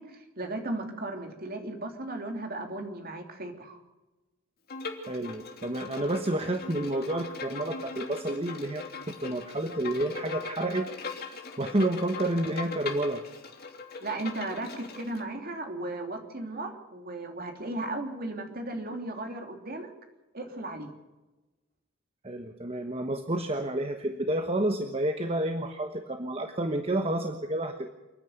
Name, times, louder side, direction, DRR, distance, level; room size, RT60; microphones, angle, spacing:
voice 1, 0.0-3.8 14.0-19.9 20.3-20.9, right 2 dB, 45° right, 4 dB, 3.2 m, -36 dB
Bowed string instrument, 4.7-15.2, left 4 dB, 45° left, 3.1 m, -40 dB
voice 2, 5.1-10.9 11.6-13.2 22.2-27.9, right 1 dB, 30° right, 6 dB, 1.2 m, -30 dB
28.5 x 10.5 x 9.3 m, 1.1 s
head